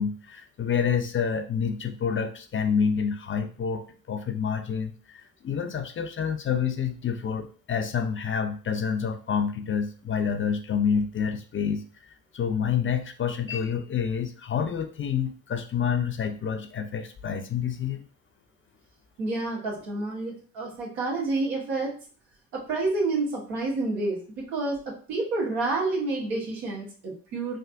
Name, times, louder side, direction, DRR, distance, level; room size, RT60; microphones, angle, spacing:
voice 1, 0.0-11.8 12.3-18.0, left 7 dB, 30° left, 7 dB, 0.4 m, -28 dB
voice 2, 19.2-21.9 22.5-27.6, right 3 dB, 80° right, -3 dB, 1.2 m, -29 dB
3.4 x 2.5 x 2.4 m, 0.41 s
hypercardioid pair, 50°, 44 cm